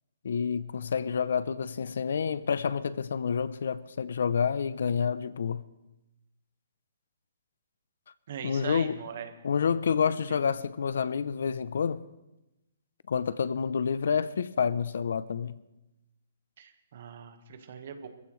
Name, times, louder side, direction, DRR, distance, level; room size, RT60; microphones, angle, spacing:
voice 1, 0.2-5.6 8.4-9.0 9.4-12.0 13.1-15.6, left 6 dB, 60° left, 0.6 m, -28 dB
voice 2, 8.3-9.3 10.0-10.1 16.6-18.1, right 7 dB, 40° right, 1.4 m, -41 dB
23.5 x 15.5 x 3.2 m
hypercardioid pair, 180°, 0 cm